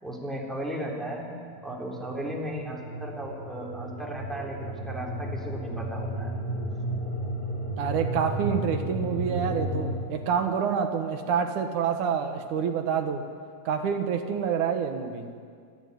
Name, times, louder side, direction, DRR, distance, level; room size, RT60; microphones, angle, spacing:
voice 1, 0.0-1.3 1.6-6.3, right 1 dB, ahead, -1 dB, 2.7 m, -35 dB
sound 1, 1.7-9.9, right 1 dB, 50° left, 5.9 m, -33 dB
voice 2, 7.8-13.2 13.7-15.3, right 7 dB, 65° right, 6 dB, 2.2 m, -27 dB
29.5 x 11.5 x 9.6 m, 2.2 s
omnidirectional pair, 4.6 m